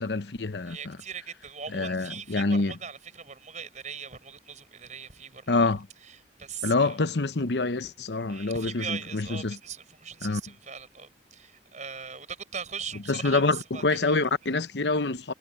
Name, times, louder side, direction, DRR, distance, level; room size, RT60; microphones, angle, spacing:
voice 1, 0.0-1.0 1.7-2.7 5.5-5.9 6.6-9.6 10.2-10.4 13.1-15.3, left 3 dB, 75° left, 0.9 m, -26 dB
voice 2, 0.6-5.7 6.0-7.0 8.3-14.2, right 6 dB, 45° right, 5.7 m, -40 dB
head